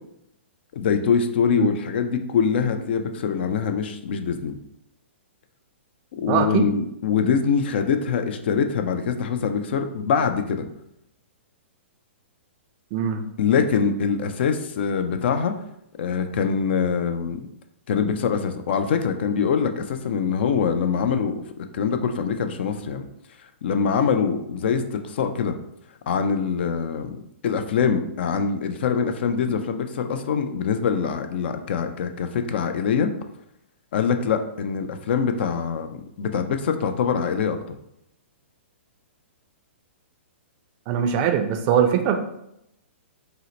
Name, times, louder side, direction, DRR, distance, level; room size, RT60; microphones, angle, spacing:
voice 1, 0.7-4.6 6.2-10.6 13.4-15.5 16.0-17.4 17.9-21.4 21.7-23.1 23.6-25.6 26.1-27.2 27.4-33.1 33.9-35.9 36.2-37.6, left 6 dB, 60° left, 7 dB, 0.4 m, -24 dB
voice 2, 6.3-6.7 12.9-13.2 40.9-42.2, right 8 dB, 35° right, 4 dB, 0.3 m, -21 dB
2.8 x 2.1 x 3.9 m, 0.78 s
hypercardioid pair, 125°, 7 cm